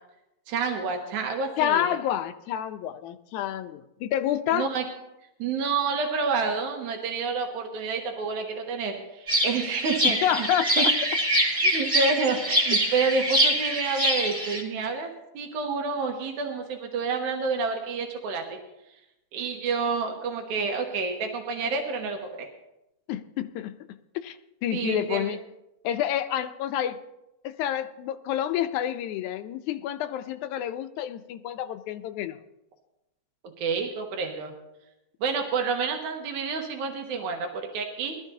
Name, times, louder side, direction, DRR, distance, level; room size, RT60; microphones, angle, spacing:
voice 1, 0.5-1.9 4.5-4.8 5.4-10.5 10.7-10.9 11.6-18.6 19.3-22.5 24.7-25.4 33.4-34.5 35.2-38.2, right 4 dB, 90° right, 2.5 m, -29 dB
voice 2, 1.6-4.7 10.0-10.9 12.8-12.9 23.1-23.7 24.2-25.4 25.8-27.0 27.4-32.4, left 11 dB, 85° left, 2.0 m, -29 dB
sound 1, 9.3-14.6, equal, 20° right, 1.4 m, -24 dB
20.0 x 13.5 x 2.7 m
omnidirectional pair, 3.4 m